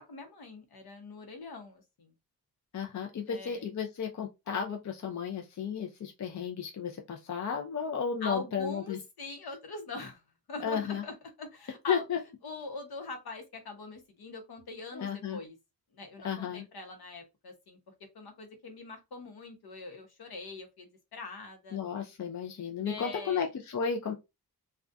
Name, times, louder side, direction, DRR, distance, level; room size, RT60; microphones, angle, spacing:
voice 1, 0.0-2.1 3.3-3.7 8.2-10.2 10.5-12.0 12.4-15.6 15.9-17.8 18.1-21.8 22.8-23.5, left 3 dB, 70° left, 0.9 m, -43 dB
voice 2, 2.7-9.0 10.6-11.0 11.9-12.2 14.9-15.4 16.2-16.6 21.7-24.1, left 7 dB, 45° left, 0.5 m, -33 dB
2.4 x 2.3 x 2.3 m
cardioid pair, 55°, 39 cm